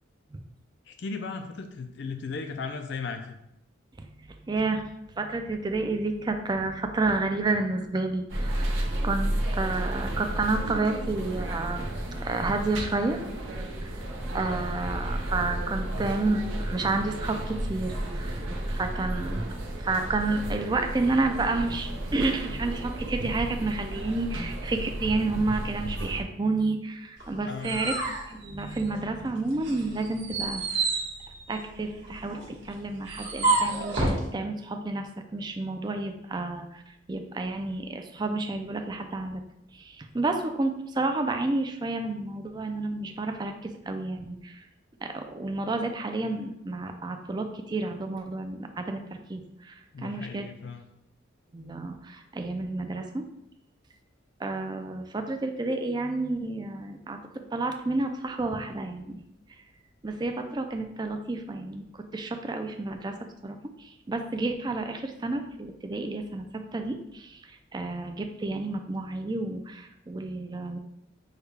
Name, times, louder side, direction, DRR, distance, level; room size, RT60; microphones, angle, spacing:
voice 1, 0.9-3.4 15.9-16.2 27.5-27.8 49.9-50.9, left 4 dB, 60° left, 6 dB, 0.4 m, -36 dB
voice 2, 4.0-13.2 13.6-14.1 14.3-19.5 19.8-27.9 28.3-30.8 31.5-39.4 39.7-44.7 45.0-50.5 51.5-53.3 54.4-57.2 57.5-59.1 60.0-63.1 63.4-70.8, right 2 dB, 20° right, 5 dB, 0.4 m, -30 dB
sound 1, 8.3-26.2, right 1 dB, 85° right, 0.8 m, -32 dB
sound 2, 27.2-29.2 29.6-34.2, right 3 dB, 65° right, 1.5 m, -30 dB
6.4 x 2.3 x 3.3 m, 0.80 s
head